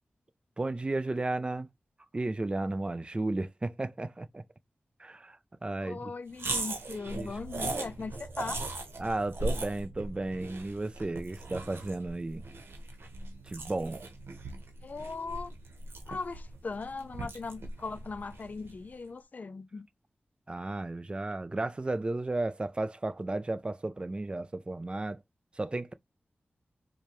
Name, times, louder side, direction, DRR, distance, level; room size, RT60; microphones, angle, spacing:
voice 1, 0.6-1.7 2.1-4.4 5.0-6.1 7.1-7.3 7.7-7.9 9.0-12.4 13.5-14.0 20.5-25.2 25.6-25.9, right 2 dB, 25° right, 0.4 m, -34 dB
voice 2, 5.8-8.6 14.8-15.5 16.1-19.9, left 4 dB, 45° left, 0.3 m, -39 dB
sound 1, 6.3-18.8, right 2 dB, 80° right, 0.9 m, -39 dB
4.8 x 2.2 x 2.9 m
wide cardioid pair, 85°, 4 cm